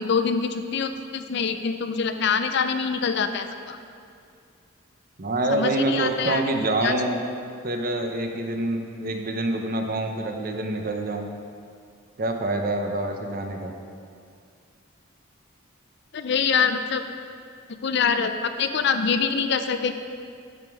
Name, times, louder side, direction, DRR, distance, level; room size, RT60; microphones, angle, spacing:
voice 1, 0.0-3.8 5.5-6.4 6.8-6.9 16.1-17.0 17.8-19.9, left 6 dB, 55° left, 8 dB, 0.5 m, -25 dB
voice 2, 5.2-7.2 7.6-11.3 12.2-13.7, right 2 dB, 45° right, 4 dB, 0.8 m, -26 dB
9.6 x 7.2 x 4.7 m, 2.3 s
head